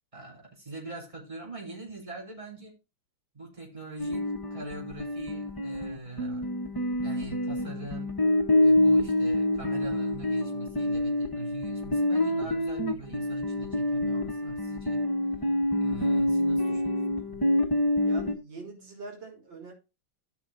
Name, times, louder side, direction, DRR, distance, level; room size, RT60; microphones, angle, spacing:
voice 1, 0.1-2.8 3.3-6.5 7.0-8.1 8.6-15.0 15.8-17.4, right 3 dB, 15° right, -2 dB, 4.1 m, -43 dB
sound 1, 4.0-18.4, left 1 dB, 20° left, 0.6 m, -27 dB
voice 2, 12.2-12.6 16.6-16.9 18.0-19.7, right 3 dB, 70° right, -1 dB, 4.0 m, -44 dB
14.5 x 6.1 x 2.6 m, 0.28 s
omnidirectional pair, 2.1 m